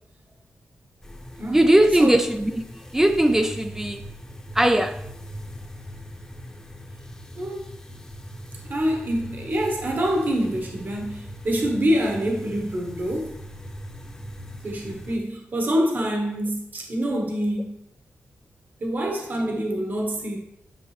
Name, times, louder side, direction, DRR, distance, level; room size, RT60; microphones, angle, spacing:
sound 1, 1.0-15.2, equal, 15° left, 0.9 m, -40 dB
voice 1, 1.5-2.6 2.9-4.0 4.5-5.1, right 1 dB, 10° right, 0.4 m, -19 dB
voice 2, 8.6-13.4 14.6-17.8 18.8-20.4, equal, 45° right, 1.3 m, -26 dB
10.5 x 6.0 x 3.3 m
wide cardioid pair, 150°, 4 cm